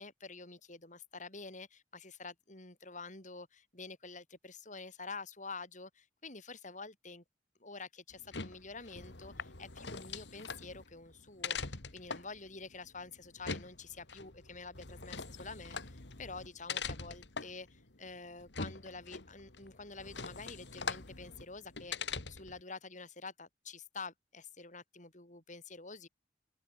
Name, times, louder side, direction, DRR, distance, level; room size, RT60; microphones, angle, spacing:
voice 1, 0.0-7.2 7.6-26.1, left 4 dB, 45° left, 7.3 m, -48 dB
sound 1, 8.1-22.6, left 5 dB, 85° left, 2.5 m, -43 dB
head